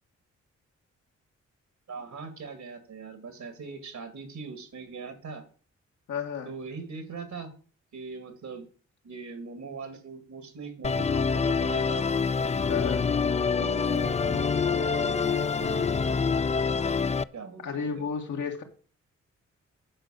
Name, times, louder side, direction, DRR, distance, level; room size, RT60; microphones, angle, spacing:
voice 1, 1.9-5.4 6.4-7.5 7.9-8.7 9.0-12.0 13.6-16.2 17.3-17.6 18.0-18.1, right 4 dB, 75° right, 2.3 m, -41 dB
voice 2, 6.1-6.5 12.7-13.1 17.6-18.6, left 6 dB, 85° left, 1.9 m, -32 dB
Musical instrument, 10.8-17.2, left 5 dB, 25° left, 0.4 m, -26 dB
8.9 x 5.3 x 6.5 m
cardioid pair, 60°, 30 cm